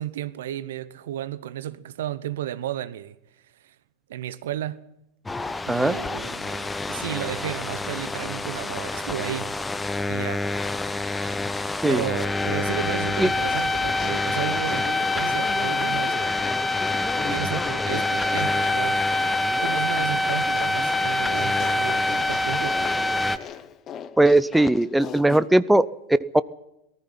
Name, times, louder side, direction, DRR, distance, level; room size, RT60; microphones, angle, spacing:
voice 1, 0.0-3.2 3.6-3.7 4.1-4.8 5.7-9.6 10.1-10.5 11.8-16.5 17.3-19.0 19.6-22.8, right 12 dB, 65° right, 1.1 m, -33 dB
sound 1, 5.3-23.4, left 2 dB, 10° left, 1.1 m, -26 dB
Fart, 12.0-14.7 15.1-25.5, left 9 dB, 35° left, 1.2 m, -40 dB
voice 2, 24.2-26.4, right 1 dB, 5° right, 0.7 m, -19 dB
19.0 x 14.5 x 10.0 m
figure-of-eight pair, 85°, 0 cm